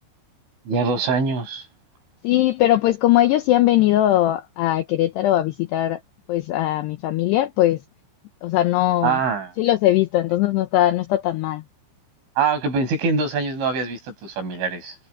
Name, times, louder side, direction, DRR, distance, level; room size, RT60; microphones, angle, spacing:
voice 1, 0.7-1.6 9.0-9.5 12.4-15.0, right 4 dB, 65° right, 8.4 m, -23 dB
voice 2, 2.2-6.0 6.3-7.8 8.4-9.2 9.6-11.6, left 14 dB, 90° left, 2.4 m, -20 dB
omnidirectional pair, 5.9 m